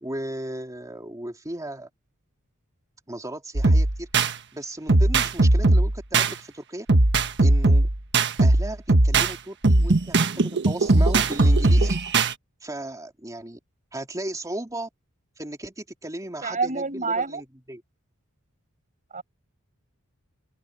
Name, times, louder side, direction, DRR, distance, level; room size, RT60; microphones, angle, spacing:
voice 1, 0.0-1.9 3.1-6.9 7.4-7.9 8.4-12.0 12.6-13.6 13.9-14.9 15.4-17.8, right 1 dB, 15° right, 2.8 m, -35 dB
sound 1, 3.6-4.3 4.9-6.3 6.9-9.3 9.6-12.3, right 2 dB, 55° right, 1.4 m, -19 dB
voice 2, 16.4-17.4 19.1-19.2, right 4 dB, 35° right, 7.7 m, -27 dB
open air
head